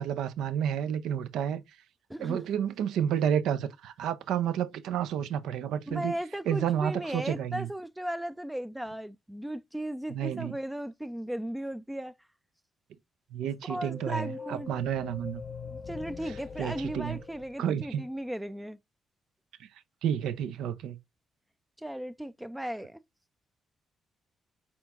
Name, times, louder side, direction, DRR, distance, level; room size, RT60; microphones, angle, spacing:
voice 1, 0.0-1.6 2.2-6.2 6.5-7.7 10.1-10.5 13.3-15.4 16.6-17.2 17.6-18.0 19.6-19.7 20.0-21.0, right 9 dB, 75° right, 0.4 m, -30 dB
voice 2, 2.1-2.4 5.9-12.1 13.6-14.7 15.9-18.8 21.8-23.0, right 1 dB, 5° right, 0.3 m, -36 dB
sound 1, 13.7-18.3, left 5 dB, 55° left, 0.4 m, -43 dB
4.3 x 4.2 x 2.4 m
hypercardioid pair, 45°, 0 cm